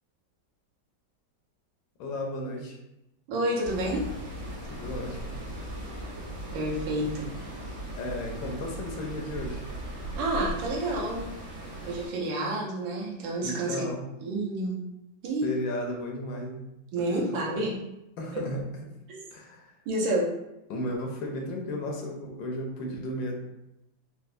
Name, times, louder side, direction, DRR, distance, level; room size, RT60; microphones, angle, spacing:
voice 1, 2.0-2.8 4.8-5.4 8.0-9.6 13.4-14.1 15.4-16.7 17.0-17.6 18.2-18.6 19.3-19.7 20.7-23.4, left 1 dB, 75° left, 0 dB, 1.3 m, -34 dB
voice 2, 3.3-4.1 6.5-7.4 10.2-11.2 11.8-13.9 14.2-14.8 15.2-15.5 16.9-17.8 19.1-19.2 19.9-20.3, right 1 dB, 80° right, -2 dB, 1.5 m, -29 dB
sound 1, 3.6-12.1, right 1 dB, 65° right, 1.5 m, -38 dB
4.3 x 2.0 x 2.5 m, 0.90 s
omnidirectional pair, 2.1 m